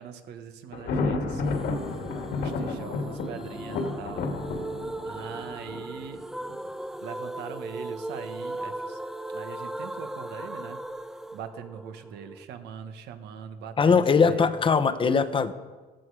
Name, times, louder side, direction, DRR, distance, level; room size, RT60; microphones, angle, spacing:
voice 1, 0.0-4.7 5.0-6.2 7.0-9.0 9.3-10.8 11.3-14.5, right 8 dB, 80° right, 8 dB, 1.4 m, -42 dB
Thunder, 0.7-6.5, left 3 dB, 75° left, 2.2 m, -31 dB
sound 1, 1.5-12.4, right 1 dB, 5° right, 0.5 m, -38 dB
voice 2, 13.8-15.5, left 5 dB, 30° left, 10 dB, 0.9 m, -21 dB
15.5 x 12.0 x 4.8 m, 1.3 s
cardioid pair, 110°, 17 cm